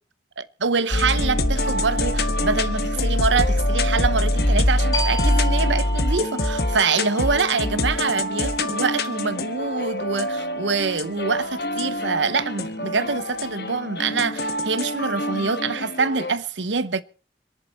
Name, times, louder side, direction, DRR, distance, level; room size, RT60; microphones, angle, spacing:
voice 1, 0.4-17.0, right 4 dB, 85° right, 0.9 m, -25 dB
sound 1, 0.9-16.3, left 1 dB, 60° left, 1.4 m, -24 dB
sound 2, 4.9-10.2, right 1 dB, 20° left, 3.0 m, -35 dB
27.0 x 11.0 x 4.4 m
head